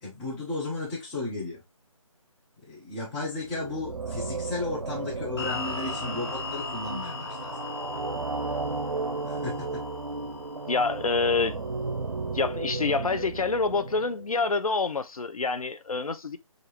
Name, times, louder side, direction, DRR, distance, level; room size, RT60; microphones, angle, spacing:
voice 1, 0.0-1.6 2.7-7.5 9.2-9.9, left 2 dB, 5° left, 0.5 m, -34 dB
sound 1, 3.2-14.5, right 3 dB, 80° right, 0.7 m, -34 dB
sound 2, 5.4-12.5, left 4 dB, 40° left, 1.2 m, -39 dB
voice 2, 10.7-11.6 12.3-16.4, left 4 dB, 80° left, 0.6 m, -27 dB
5.0 x 2.5 x 3.0 m
figure-of-eight pair, 160°, 18 cm